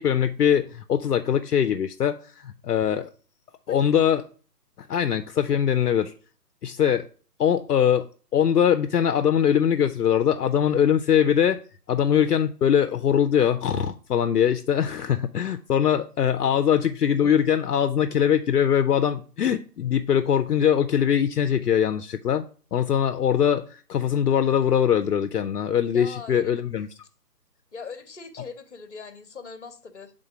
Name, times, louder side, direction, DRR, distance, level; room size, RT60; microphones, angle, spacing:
voice 1, 0.0-3.1 3.7-4.2 4.8-6.1 6.6-7.1 7.4-8.1 8.3-11.6 11.9-26.9, left 9 dB, 70° left, 0.6 m, -22 dB
voice 2, 3.7-4.0 25.9-26.6 27.7-30.1, left 5 dB, 45° left, 0.9 m, -41 dB
7.7 x 3.8 x 4.9 m
hypercardioid pair, 180°, 49 cm